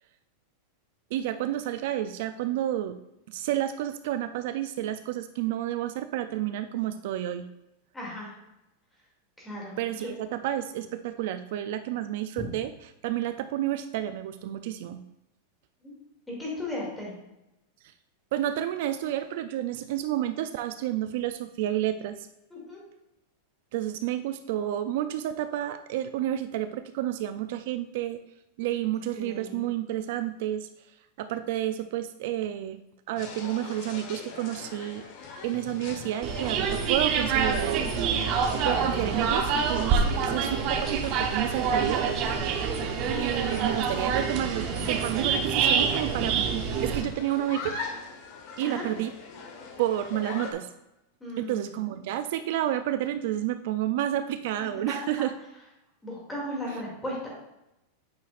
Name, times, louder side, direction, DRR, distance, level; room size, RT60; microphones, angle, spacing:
voice 1, 1.1-3.0 3.3-7.5 9.8-12.7 13.0-15.0 17.8-17.9 18.3-22.3 23.7-28.2 28.6-32.8 33.1-35.0 35.4-38.0 38.5-42.1 43.2-47.8 48.6-49.1 49.8-50.7 51.4-55.3 56.7-56.8, right 12 dB, 55° right, 10 dB, 0.3 m, -30 dB
voice 2, 7.9-8.3 9.4-10.1 15.8-15.9 16.3-17.1 22.5-22.8 29.1-29.6 40.0-40.4 48.6-48.9 51.2-51.8 56.0-57.3, left 1 dB, 10° left, -5 dB, 2.5 m, -36 dB
sound 1, 33.2-50.5, left 4 dB, 45° left, 1.2 m, -42 dB
sound 2, 36.2-47.0, right 6 dB, 40° right, 0.8 m, -26 dB
8.5 x 5.7 x 2.5 m, 0.91 s
supercardioid pair, 160°, 0 cm